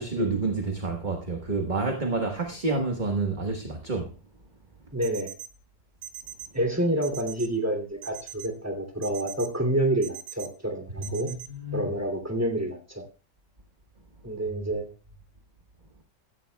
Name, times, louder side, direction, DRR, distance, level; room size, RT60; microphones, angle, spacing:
voice 1, 0.0-4.1 11.0-11.9 14.5-14.6, right 3 dB, 30° right, 1.2 m, -29 dB
voice 2, 4.9-5.4 6.5-11.3 11.7-13.0 14.2-14.8, right 1 dB, 10° right, 2.5 m, -28 dB
sound 1, 5.0-5.5 6.0-6.5 7.0-7.5 8.0-8.5 9.0-9.5 10.0-10.5 11.0-11.5, right 10 dB, 85° right, 1.9 m, -40 dB
15.5 x 14.0 x 2.3 m
omnidirectional pair, 2.0 m